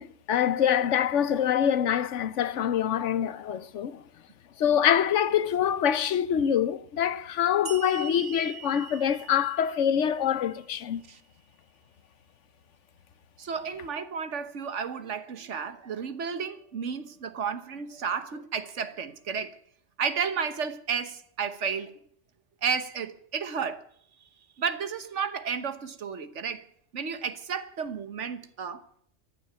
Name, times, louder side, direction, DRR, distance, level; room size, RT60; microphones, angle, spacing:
voice 1, 0.0-4.0 4.6-11.0, left 9 dB, 90° left, 1.1 m, -25 dB
sound 1, 7.7-11.0, right 8 dB, 65° right, 1.6 m, -44 dB
voice 2, 13.4-19.6 20.0-21.9 22.6-23.8 24.6-26.6 26.9-28.8, right 6 dB, 85° right, 1.5 m, -32 dB
14.5 x 10.5 x 8.1 m
omnidirectional pair, 1.2 m